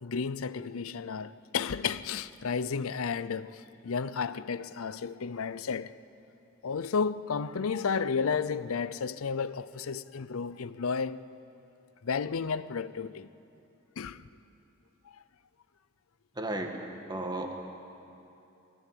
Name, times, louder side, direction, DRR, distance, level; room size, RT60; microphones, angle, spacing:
voice 1, 0.0-6.0 6.6-11.2 12.0-13.3 14.0-14.3 15.1-15.2, left 5 dB, 80° left, 0.6 m, -32 dB
voice 2, 16.3-16.7 17.1-17.5, right 1 dB, 20° right, 1.6 m, -33 dB
20.5 x 15.0 x 9.3 m
head